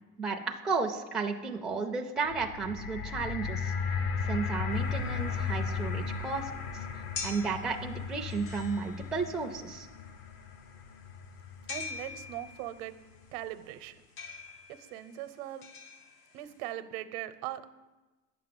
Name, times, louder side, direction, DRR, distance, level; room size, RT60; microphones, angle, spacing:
voice 1, 0.2-3.7 4.2-6.5 7.2-9.9, right 4 dB, ahead, 2 dB, 0.4 m, -33 dB
sound 1, 2.3-12.5 13.2-13.3, left 5 dB, 45° left, 0.6 m, -36 dB
sound 2, 4.8-16.7, left 5 dB, 70° left, 1.1 m, -46 dB
voice 2, 11.7-13.0 13.3-14.0 14.7-15.7 16.3-17.7, right 13 dB, 90° right, 12 dB, 0.8 m, -40 dB
9.1 x 6.8 x 7.6 m, 1.2 s
cardioid pair, 175°, 30 cm